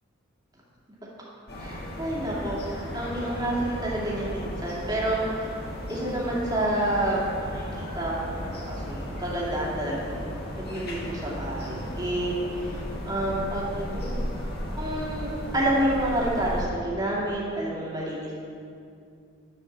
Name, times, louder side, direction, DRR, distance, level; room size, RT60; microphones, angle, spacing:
sound 1, 1.5-16.6, equal, 55° left, 1.8 m, -35 dB
voice 1, 1.6-5.5 5.9-10.3 10.6-14.1 14.8-18.3, right 1 dB, 20° right, -5 dB, 2.4 m, -29 dB
11.0 x 5.1 x 7.3 m, 2.4 s
head